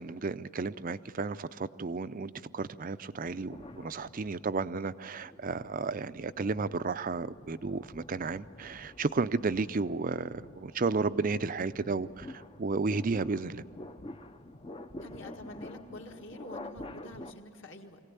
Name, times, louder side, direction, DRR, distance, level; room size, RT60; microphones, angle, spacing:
voice 1, 0.0-13.6, right 4 dB, 40° right, 14 dB, 0.5 m, -33 dB
sound 1, 3.3-4.7 5.2-17.3, left 1 dB, 25° left, 0.6 m, -48 dB
voice 2, 15.0-18.0, left 1 dB, 55° left, 2 dB, 1.9 m, -47 dB
23.5 x 17.5 x 8.3 m, 2.6 s
head